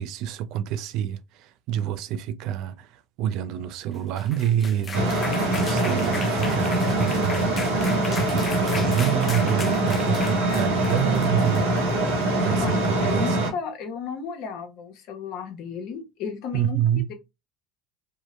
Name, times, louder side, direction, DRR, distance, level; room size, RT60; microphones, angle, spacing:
voice 1, 0.0-2.9 3.2-7.7 8.1-11.9 12.4-13.4 16.5-17.1, right 10 dB, 65° right, 0.3 m, -27 dB
sound 1, 3.9-12.2, left 4 dB, 30° left, 0.5 m, -37 dB
sound 2, 4.9-13.5, right 1 dB, 85° right, 1.3 m, -23 dB
voice 2, 12.5-17.1, left 6 dB, 65° left, 0.8 m, -34 dB
2.7 x 2.0 x 2.3 m
hypercardioid pair, 80°, 0 cm